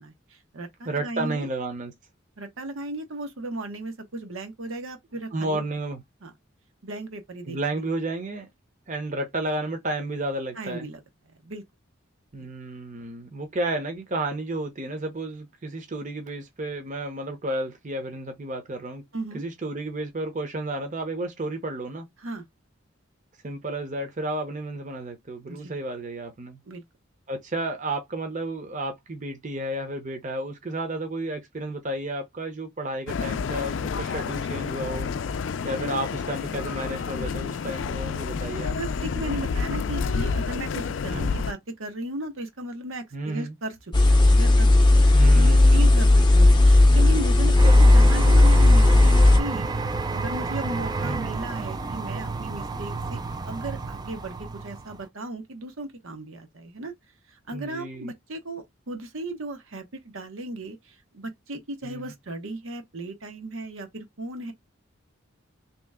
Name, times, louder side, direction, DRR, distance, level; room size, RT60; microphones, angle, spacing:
voice 1, 0.0-1.5 2.4-5.6 6.2-6.3 6.8-7.9 10.5-11.0 11.3-11.6 19.1-19.4 22.2-22.4 25.5-25.8 26.7-26.8 38.6-43.8 44.0-49.7 50.1-53.2 53.5-56.9 57.3-64.5, right 1 dB, 80° right, 0.9 m, -36 dB
voice 2, 0.8-1.9 5.3-6.0 7.5-8.5 8.9-10.9 12.3-19.0 19.3-22.1 23.4-26.6 27.3-35.1 35.6-38.8 41.1-41.4 43.1-43.6 45.1-46.2 47.6-47.7 51.0-51.3 57.5-58.1 61.8-62.1, right 2 dB, 40° right, 0.7 m, -32 dB
sound 1, 33.1-41.5, left 5 dB, 65° left, 0.4 m, -29 dB
sound 2, 43.9-49.4, left 2 dB, 20° left, 0.6 m, -15 dB
sound 3, 47.6-55.0, right 3 dB, 20° right, 0.3 m, -31 dB
3.1 x 2.9 x 3.6 m
head